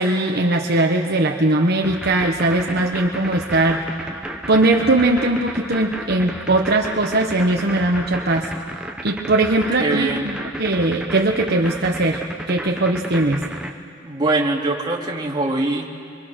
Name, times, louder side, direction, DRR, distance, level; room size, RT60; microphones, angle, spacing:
voice 1, 0.0-3.8 4.5-8.5 9.0-13.5, right 2 dB, 55° right, 1 dB, 1.2 m, -20 dB
sound 1, 1.8-13.7, right 1 dB, 5° right, 1.2 m, -32 dB
voice 2, 9.8-10.3 14.0-16.0, right 2 dB, 25° right, -3 dB, 2.7 m, -22 dB
27.0 x 23.5 x 6.4 m, 2.3 s
head